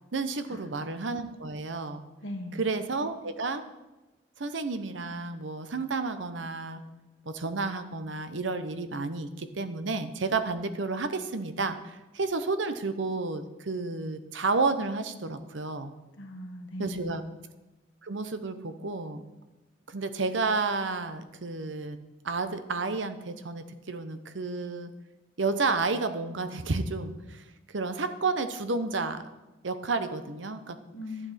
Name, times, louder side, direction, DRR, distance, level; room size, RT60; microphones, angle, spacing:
voice 1, 0.1-2.0 2.6-3.6 4.4-6.8 7.3-15.9 16.8-17.2 18.0-19.2 19.9-22.0 22.2-24.9 25.4-29.2 29.6-30.8, right 3 dB, 80° right, 10 dB, 0.8 m, -31 dB
voice 2, 2.2-2.6 16.1-17.3 30.9-31.3, left 1 dB, 90° left, 4 dB, 1.4 m, -39 dB
12.0 x 8.6 x 4.2 m, 1.1 s
head